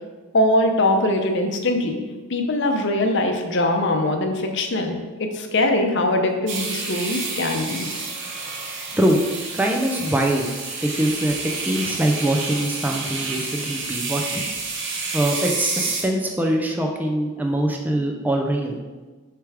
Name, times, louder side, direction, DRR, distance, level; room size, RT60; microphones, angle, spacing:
voice 1, 0.3-2.0 2.3-7.9, left 1 dB, 60° left, 4 dB, 0.7 m, -22 dB
sound 1, 6.5-16.0, right 3 dB, 60° right, 1.0 m, -29 dB
voice 2, 9.5-10.5 10.8-11.4 11.6-14.5 15.1-18.8, right 1 dB, 10° right, 1 dB, 0.5 m, -23 dB
6.7 x 3.4 x 4.8 m, 1.3 s
head